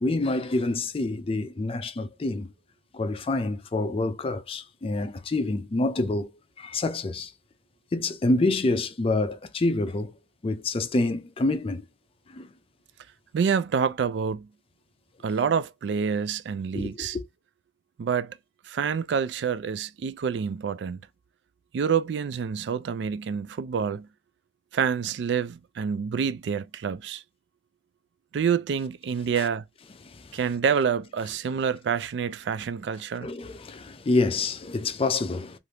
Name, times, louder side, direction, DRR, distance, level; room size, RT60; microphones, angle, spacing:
voice 1, 0.0-2.5 2.9-6.3 6.6-7.3 7.9-10.1 10.4-11.8 12.3-12.5 16.7-17.2 29.4-29.5 30.2-30.4 33.2-35.6, left 2 dB, 30° left, 0.4 m, -27 dB
voice 2, 13.3-14.5 15.2-17.2 18.0-18.4 18.7-21.1 21.7-24.1 24.7-27.2 28.3-29.6 30.3-33.3, right 6 dB, 75° right, 0.3 m, -27 dB
3.3 x 2.5 x 2.8 m
head